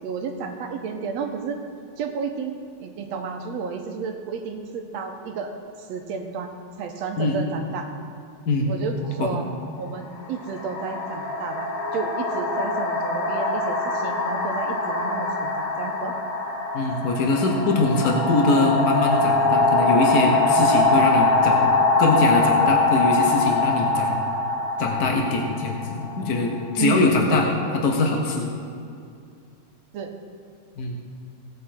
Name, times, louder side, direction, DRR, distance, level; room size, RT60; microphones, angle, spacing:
voice 1, 0.0-1.6 2.0-5.5 5.9-6.5 6.8-7.9 8.7-9.5 9.8-16.1 26.8-27.8 29.9-30.1, right 5 dB, 70° right, 4 dB, 2.0 m, -31 dB
voice 2, 7.2-7.6 8.5-8.7 9.2-9.4 16.7-21.7 22.0-24.2 24.8-27.5 27.8-28.5 30.8-31.0, left 3 dB, 75° left, 1 dB, 0.8 m, -22 dB
sound 1, 9.0-9.2 10.2-26.8, left 2 dB, 55° left, 2.1 m, -23 dB
16.5 x 8.7 x 4.3 m, 2.5 s
omnidirectional pair, 3.3 m